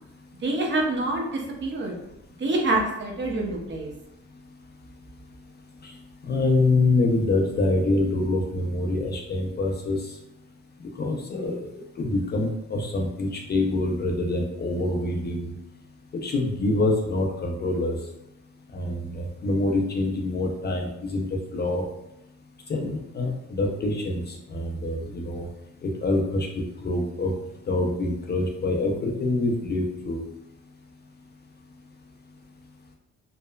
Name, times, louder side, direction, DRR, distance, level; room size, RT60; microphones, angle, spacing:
voice 1, 0.4-1.9 2.4-3.9, right 2 dB, 40° right, 0 dB, 0.6 m, -26 dB
voice 2, 6.2-10.1 11.0-15.5 16.2-18.0 18.7-21.9 22.7-25.5 25.8-27.3 27.7-30.2, left 2 dB, 35° left, 0 dB, 0.4 m, -26 dB
3.0 x 2.0 x 2.2 m, 0.86 s
cardioid pair, 90°, 30 cm